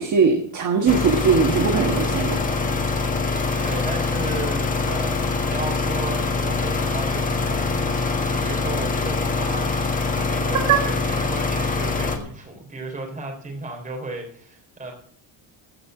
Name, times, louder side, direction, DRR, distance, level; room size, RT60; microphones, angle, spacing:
voice 1, 0.0-2.4 10.7-10.8, right 5 dB, 35° right, 3 dB, 1.4 m, -20 dB
sound 1, 0.9-12.2, left 4 dB, 15° left, 1.4 m, -24 dB
voice 2, 3.6-14.9, right 2 dB, 15° right, 0 dB, 3.4 m, -34 dB
15.5 x 5.5 x 7.6 m, 0.62 s
cardioid pair, 170°, 49 cm